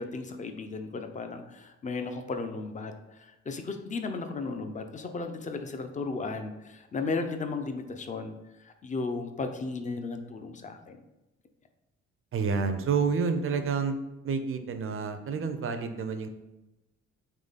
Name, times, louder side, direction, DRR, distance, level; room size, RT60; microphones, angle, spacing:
voice 1, 0.0-8.3 8.6-11.0, left 3 dB, 25° left, 7 dB, 0.5 m, -35 dB
voice 2, 12.3-13.9 14.2-16.3, right 5 dB, 45° right, 8 dB, 0.5 m, -29 dB
3.8 x 3.1 x 4.0 m, 1.0 s
cardioid pair, 90°, 30 cm